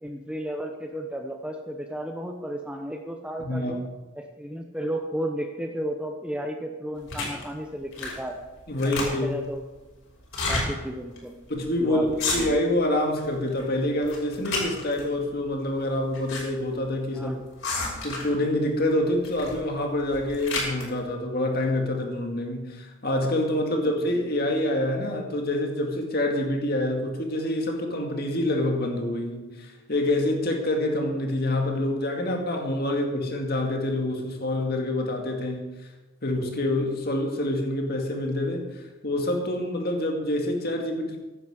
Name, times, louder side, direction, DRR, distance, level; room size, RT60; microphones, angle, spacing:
voice 1, 0.0-3.8 4.2-8.4 8.8-9.6 10.5-11.4 11.8-12.4 17.1-17.4, right 1 dB, 5° right, 3 dB, 0.8 m, -33 dB
voice 2, 3.4-3.7 8.7-9.4 11.5-12.1 12.3-17.3 18.0-35.8 36.2-41.2, left 1 dB, 45° left, 2 dB, 2.1 m, -26 dB
sound 1, 7.1-7.4 7.9-8.3 8.6-9.4 10.2-10.7 11.2-11.3 11.5-11.7 12.1-12.7 13.2-13.6 14.0-15.0 15.8-16.4 16.7-16.8 17.6-18.4 19.2-19.6 20.0-20.9, left 3 dB, 75° left, 5.7 m, -30 dB
15.5 x 11.0 x 5.0 m, 1.2 s
head